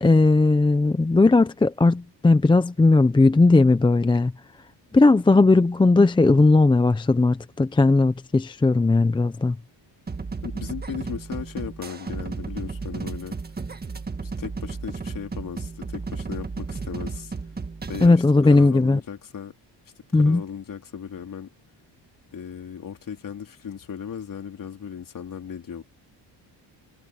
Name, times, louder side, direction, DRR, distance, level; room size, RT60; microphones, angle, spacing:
voice 1, 0.0-4.3 4.9-9.6 18.0-19.0 20.1-20.4, left 3 dB, 10° left, 0.5 m, -17 dB
sound 1, 10.1-18.1, right 4 dB, 20° right, 1.7 m, -33 dB
voice 2, 10.4-13.4 14.2-17.3 17.9-19.5 20.1-21.5 22.3-25.8, left 7 dB, 45° left, 3.2 m, -36 dB
cardioid pair, 155°, 45 cm